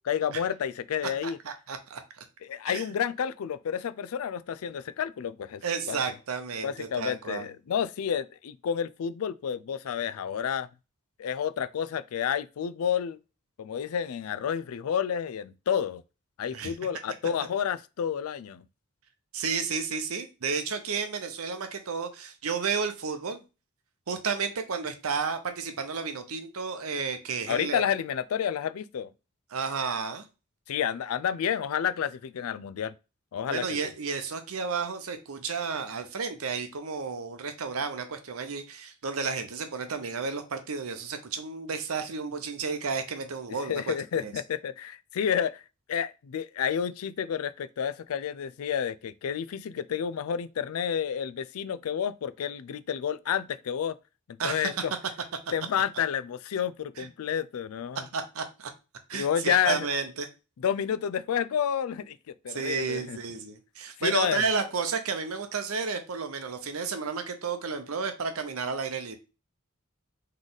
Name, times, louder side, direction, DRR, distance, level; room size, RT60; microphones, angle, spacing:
voice 1, 0.0-1.4 2.4-5.6 5.9-6.0 6.6-10.7 11.2-13.2 13.6-16.0 16.4-18.6 27.5-29.1 30.7-32.9 33.3-33.6 43.7-45.6 45.9-54.0 54.3-54.9 55.5-58.0 59.1-59.9 60.6-63.2 64.0-64.5, left 8 dB, 80° left, 0.4 m, -30 dB
voice 2, 1.2-2.2 2.7-2.8 5.6-7.5 16.5-16.7 19.3-23.4 24.1-27.8 29.5-30.2 33.5-43.9 44.2-44.3 54.4-54.8 57.0-57.1 58.1-58.7 59.1-60.3 62.5-69.2, right 5 dB, 80° right, 0.7 m, -32 dB
4.0 x 3.2 x 3.9 m
head